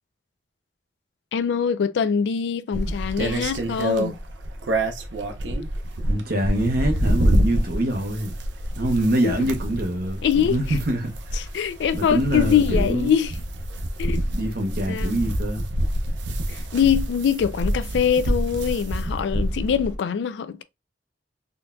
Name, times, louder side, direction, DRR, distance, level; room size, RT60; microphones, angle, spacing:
voice 1, 1.3-4.2 9.2-9.5 10.2-10.6 11.4-13.4 14.0-14.2 14.9-15.2 16.5-20.6, left 8 dB, 75° left, 0.3 m, -23 dB
sound 1, 2.7-20.0, right 1 dB, 85° right, 0.6 m, -26 dB
voice 2, 6.0-8.4 8.7-11.4 11.9-13.1 14.3-15.7, right 1 dB, 55° right, 0.8 m, -25 dB
3.8 x 2.2 x 2.5 m
head